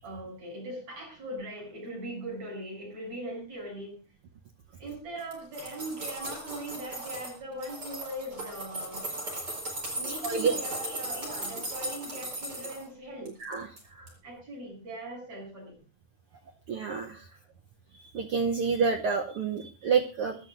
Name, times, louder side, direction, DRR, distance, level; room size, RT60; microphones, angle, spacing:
voice 1, 0.0-4.0 4.8-9.0 10.0-13.3 13.8-15.8 17.3-17.4, right 1 dB, 55° right, -1 dB, 8.7 m, -40 dB
sound 1, 5.2-7.3 7.6-12.8 13.3-13.8 14.1-14.2, right 1 dB, 30° right, 5.1 m, -37 dB
voice 2, 10.2-10.6 13.4-13.7 16.7-17.2 18.1-20.4, right 5 dB, 75° right, 4 dB, 1.3 m, -28 dB
23.5 x 12.5 x 2.6 m, 0.33 s
omnidirectional pair, 3.6 m